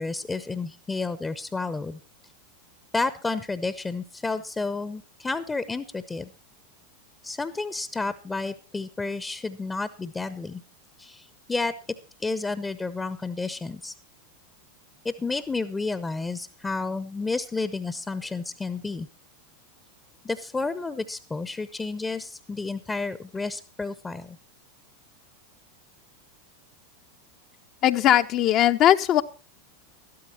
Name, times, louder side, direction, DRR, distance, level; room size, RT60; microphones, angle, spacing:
voice 1, 0.0-2.0 2.9-6.3 7.2-10.6 11.0-11.7 12.2-13.9 15.0-19.1 20.2-24.4, left 3 dB, 15° left, 14 dB, 0.7 m, -31 dB
voice 2, 27.8-29.2, left 11 dB, 40° left, 9 dB, 0.7 m, -19 dB
12.5 x 12.5 x 4.4 m, 0.34 s
figure-of-eight pair, 85°, 0 cm